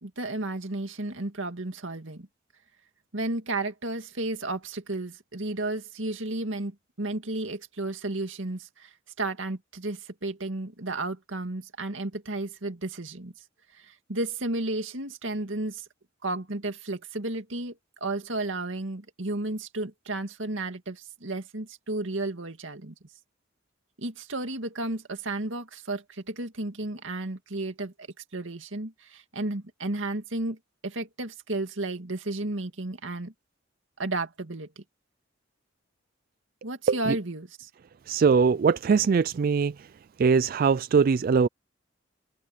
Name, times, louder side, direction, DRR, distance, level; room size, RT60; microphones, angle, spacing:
voice 1, 0.0-2.3 3.1-13.3 13.7-15.9 16.2-22.9 24.0-30.6 30.8-33.3 34.0-34.8 36.6-37.7, right 2 dB, 80° right, 2.2 m, -33 dB
voice 2, 38.1-39.9 40.2-41.5, right 5 dB, 50° right, 0.3 m, -21 dB
open air
head